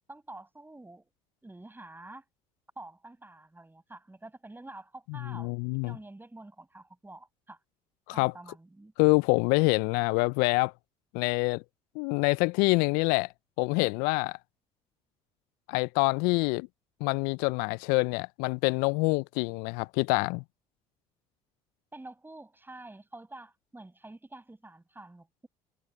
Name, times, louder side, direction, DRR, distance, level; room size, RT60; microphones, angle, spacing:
voice 1, 0.1-1.1 1.4-2.2 2.8-5.5 5.8-7.6 8.1-8.9 21.9-25.5, right 2 dB, 10° right, 7.1 m, -48 dB
voice 2, 5.2-6.0 8.1-8.3 9.0-10.7 11.1-11.6 12.0-13.3 13.6-14.4 15.7-16.7 17.0-20.4, left 29 dB, 70° left, 0.4 m, -26 dB
hypercardioid pair, 65°, 16 cm